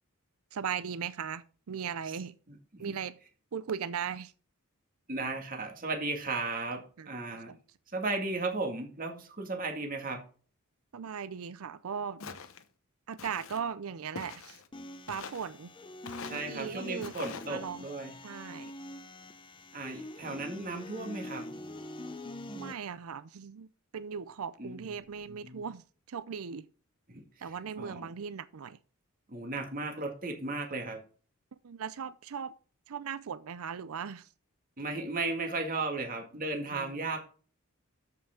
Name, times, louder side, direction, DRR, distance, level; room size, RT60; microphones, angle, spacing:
voice 1, 0.5-2.4 2.8-3.2 3.5-4.3 7.0-7.1 7.5-7.6 10.9-12.2 13.1-14.6 15.1-15.7 16.3-17.1 17.5-17.9 18.2-18.7 22.5-26.7 27.4-28.8 31.6-32.5 32.9-34.3 36.7-37.1, right 7 dB, 75° right, 0.5 m, -38 dB
voice 2, 2.5-2.9 5.1-7.5 7.9-10.2 16.2-18.1 19.7-21.4 24.6-24.8 25.4-25.6 27.1-28.1 29.3-31.0 34.8-37.2, right 3 dB, 40° right, 2.1 m, -35 dB
Walk footsteps, 12.2-12.6 13.2-13.6 14.1-14.7 15.1-15.5 16.0-16.5 17.0-17.5, left 5 dB, 65° left, 1.0 m, -43 dB
sound 1, 14.7-22.7, left 1 dB, 20° left, 0.7 m, -45 dB
13.0 x 5.7 x 3.7 m
head